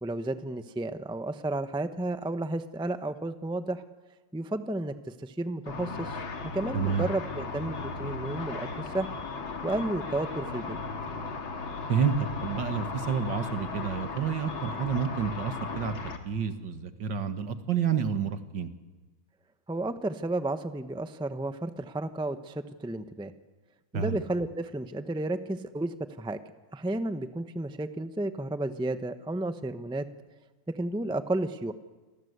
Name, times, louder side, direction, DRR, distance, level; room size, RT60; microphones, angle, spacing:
voice 1, 0.0-3.8 4.3-4.9 5.2-6.2 6.5-8.7 8.9-9.2 9.6-10.8 19.7-23.3 23.9-26.4 26.7-30.1 30.7-31.7, right 2 dB, 5° right, 9 dB, 0.7 m, -32 dB
Car / Traffic noise roadway noise / Engine, 5.7-16.2, left 4 dB, 85° left, 2.9 m, -36 dB
voice 2, 6.7-7.1 11.9-18.7 23.9-24.2, right 7 dB, 65° right, 9 dB, 2.2 m, -29 dB
29.0 x 24.0 x 8.2 m, 1.3 s
omnidirectional pair, 2.2 m